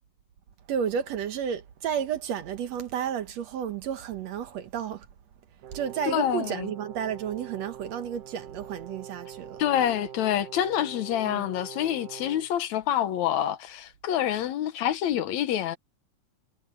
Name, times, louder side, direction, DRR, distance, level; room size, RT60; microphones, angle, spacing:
voice 1, 0.7-5.1 5.7-9.6 11.3-11.5, right 8 dB, 60° right, 2.1 m, -32 dB
Brass instrument, 5.6-12.5, right 9 dB, 80° right, 3.3 m, -44 dB
voice 2, 6.1-6.7 9.6-15.8, left 11 dB, 70° left, 2.0 m, -27 dB
omnidirectional pair, 3.8 m